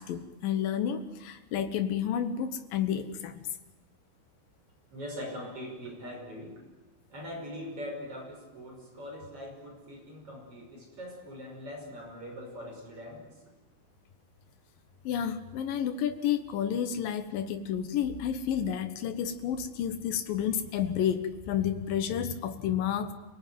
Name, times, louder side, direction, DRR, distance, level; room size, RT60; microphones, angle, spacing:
voice 1, 0.0-3.5 15.0-23.1, left 9 dB, 80° left, 8 dB, 2.0 m, -30 dB
voice 2, 4.9-6.6 7.1-13.3, equal, 30° right, 1 dB, 6.1 m, -42 dB
27.5 x 19.5 x 9.4 m, 1.1 s
omnidirectional pair, 5.9 m